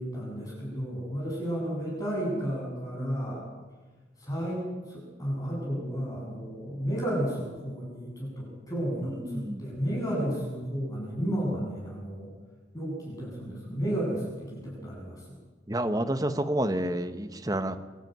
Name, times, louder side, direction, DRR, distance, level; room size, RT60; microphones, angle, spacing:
voice 1, 0.0-3.4 4.2-12.3 12.7-15.2, equal, 20° left, -4 dB, 7.9 m, -32 dB
voice 2, 9.0-9.7 15.7-17.8, right 1 dB, 20° right, 8 dB, 1.2 m, -29 dB
24.5 x 12.5 x 9.4 m, 1.2 s
head